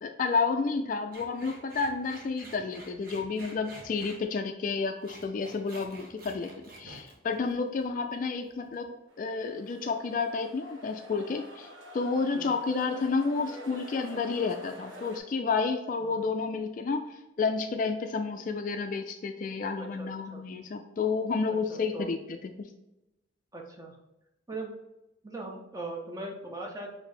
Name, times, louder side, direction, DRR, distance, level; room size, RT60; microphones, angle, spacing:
voice 1, 0.0-11.7 11.9-17.1 17.4-22.4, left 4 dB, 45° left, 6 dB, 0.3 m, -30 dB
sound 1, 1.1-4.2 4.8-8.1 8.4-8.8, right 1 dB, 50° right, 0.9 m, -49 dB
sound 2, 9.1-15.2, equal, 80° right, 1.0 m, -49 dB
voice 2, 19.9-20.4 21.7-22.1 23.5-24.0 24.5-24.8 25.2-26.9, right 2 dB, 15° right, 0 dB, 0.6 m, -40 dB
5.7 x 2.7 x 3.3 m, 0.94 s
head